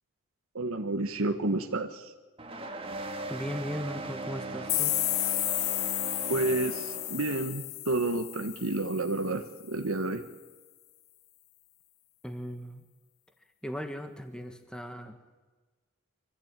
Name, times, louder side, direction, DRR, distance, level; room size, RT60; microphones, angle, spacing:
voice 1, 0.5-2.1 6.3-10.2, right 2 dB, 75° right, 7 dB, 1.3 m, -30 dB
sound 1, 2.4-7.5, right 2 dB, 25° right, 1.8 m, -39 dB
voice 2, 3.3-5.0 12.2-12.8 13.6-15.2, equal, 5° left, 6 dB, 1.4 m, -37 dB
sound 2, 4.7-9.4, left 18 dB, 70° left, 0.6 m, -32 dB
24.5 x 15.0 x 9.0 m, 1.3 s
head